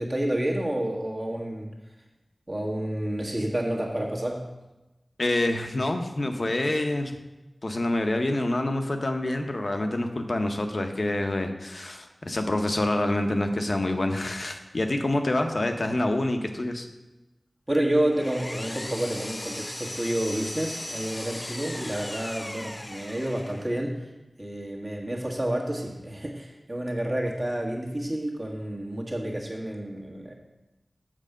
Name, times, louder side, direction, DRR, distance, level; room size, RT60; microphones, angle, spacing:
voice 1, 0.0-1.7 2.5-4.5 17.7-24.0 24.4-30.3, right 1 dB, 35° right, -2 dB, 1.6 m, -29 dB
voice 2, 5.2-7.1 7.6-16.9, left 1 dB, 55° left, 5 dB, 0.8 m, -27 dB
Power tool, 17.7-23.8, left 1 dB, 30° left, 0.4 m, -38 dB
7.6 x 4.8 x 6.6 m, 1.1 s
wide cardioid pair, 65°, 0 cm